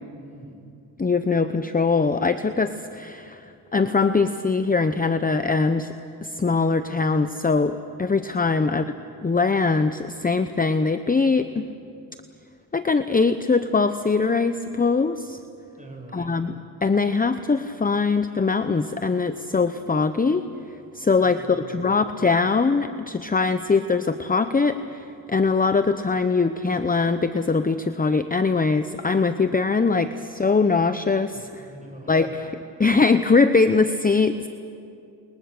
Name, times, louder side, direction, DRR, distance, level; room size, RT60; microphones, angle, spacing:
voice 1, 0.2-0.6 15.8-16.5 21.2-22.0 31.3-32.9, right 2 dB, 20° right, 1 dB, 6.9 m, -44 dB
voice 2, 1.0-3.4 3.7-5.9 6.2-8.8 9.2-11.7 12.7-15.4 16.1-16.5 16.8-20.4 20.9-21.4 21.7-31.5 32.1-32.3 32.8-34.5, left 4 dB, 20° left, 10 dB, 0.8 m, -22 dB
29.5 x 21.5 x 6.7 m, 2.5 s
cardioid pair, 70°, 42 cm